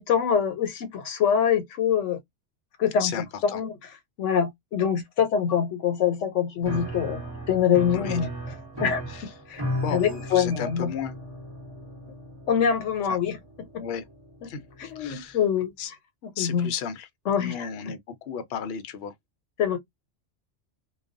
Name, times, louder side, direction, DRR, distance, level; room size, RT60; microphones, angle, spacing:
voice 1, 0.0-2.2 2.8-3.1 3.4-3.8 4.2-7.2 7.5-8.3 8.8-9.0 9.5-9.6 9.9-10.9 12.5-13.4 14.8-15.7 16.4-16.7 17.3-17.7 19.6-19.8, left 8 dB, 85° left, 1.0 m, -24 dB
voice 2, 3.0-3.6 7.9-8.2 9.1-9.3 9.8-11.2 13.8-14.0 14.5-15.4 15.8-15.9 16.4-17.1 17.4-19.1, left 7 dB, 65° left, 0.8 m, -34 dB
Piano, 6.6-15.1, equal, 25° right, 0.9 m, -36 dB
2.3 x 2.3 x 2.5 m
omnidirectional pair, 1.2 m